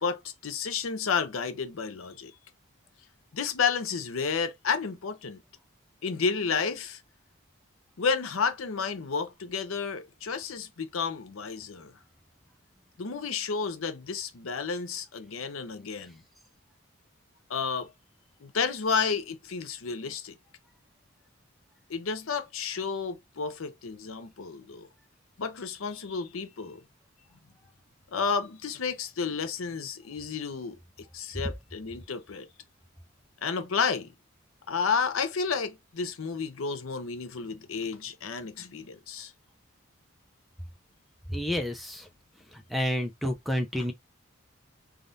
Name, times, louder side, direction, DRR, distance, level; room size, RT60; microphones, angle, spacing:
voice 1, 0.0-2.3 3.3-5.4 6.0-7.0 8.0-11.9 13.0-16.2 17.5-17.9 18.4-20.4 21.9-24.9 25.4-26.8 28.1-30.8 31.1-32.5 33.4-34.1 34.7-39.3 43.8-43.9, left 5 dB, 85° left, 0.6 m, -31 dB
voice 2, 41.3-42.1 42.5-43.9, equal, ahead, 0.4 m, -30 dB
3.5 x 2.4 x 2.6 m
head